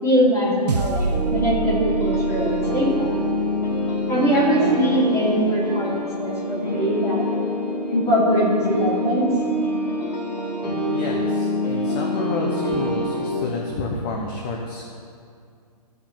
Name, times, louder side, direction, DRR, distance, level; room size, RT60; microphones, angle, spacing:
voice 1, 0.0-3.1 3.9-7.2 7.9-9.3 10.8-11.1, equal, 15° left, -7 dB, 3.2 m, -22 dB
sound 1, 0.7-5.3, right 4 dB, 70° right, 1.1 m, -29 dB
sound 2, 1.1-13.4, left 1 dB, 90° left, 2.7 m, -26 dB
voice 2, 10.9-14.9, left 3 dB, 30° left, 0 dB, 1.1 m, -30 dB
14.5 x 5.5 x 7.3 m, 2.3 s
hypercardioid pair, 150°, 21 cm